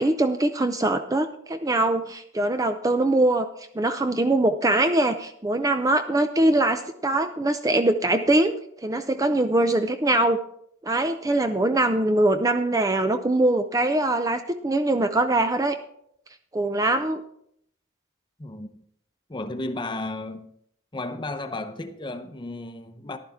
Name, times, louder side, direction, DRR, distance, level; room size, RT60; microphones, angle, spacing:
voice 1, 0.0-3.5 3.7-8.5 8.8-10.4 10.8-15.8 16.5-17.2, right 2 dB, 15° right, 0.5 m, -22 dB
voice 2, 19.3-20.5 20.9-23.2, left 2 dB, 20° left, 0.8 m, -33 dB
14.5 x 11.5 x 3.6 m
head